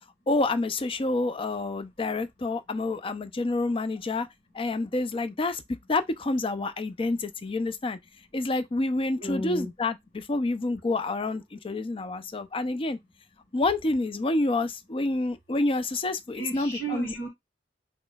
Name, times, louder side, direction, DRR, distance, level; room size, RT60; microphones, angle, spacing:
voice 1, 0.3-4.3 4.5-5.6 5.9-8.0 8.3-13.0 13.5-17.1, left 2 dB, 30° left, 0.4 m, -28 dB
voice 2, 9.2-9.7 16.3-17.3, right 2 dB, 75° left, 1.6 m, -33 dB
5.2 x 3.0 x 2.3 m
head